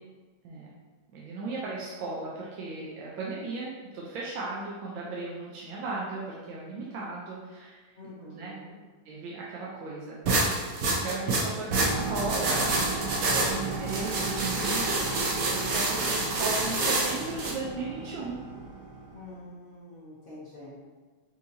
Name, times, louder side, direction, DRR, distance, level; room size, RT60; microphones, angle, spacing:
voice 1, 1.1-7.9 8.3-8.5 9.0-10.2 10.9-18.4, right 3 dB, 80° right, -5 dB, 1.4 m, -36 dB
voice 2, 8.0-8.8 19.1-20.8, left 1 dB, 85° left, -9 dB, 0.4 m, -46 dB
sound 1, 10.3-17.5, right 2 dB, 65° right, 0.9 m, -28 dB
sound 2, 11.7-19.3, right 3 dB, 50° right, 1.2 m, -36 dB
5.5 x 2.7 x 2.7 m, 1.3 s
omnidirectional pair, 2.1 m